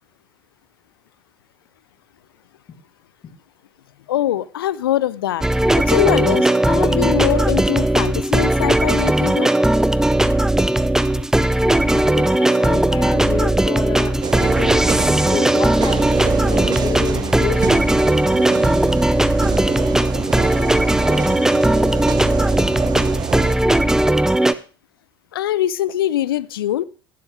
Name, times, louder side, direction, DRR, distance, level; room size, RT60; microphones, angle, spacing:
voice 1, 4.1-5.4 5.9-9.5 25.3-26.8, left 12 dB, 70° left, 20 dB, 0.6 m, -22 dB
sound 1, 5.4-24.5, right 1 dB, 5° right, 0.7 m, -17 dB
voice 2, 11.9-15.0 15.3-18.1, left 5 dB, 35° left, 2 dB, 4.6 m, -29 dB
sound 2, 14.2-23.5, right 7 dB, 35° right, 1.1 m, -27 dB
17.0 x 11.5 x 3.4 m, 0.37 s
figure-of-eight pair, 65°, 13 cm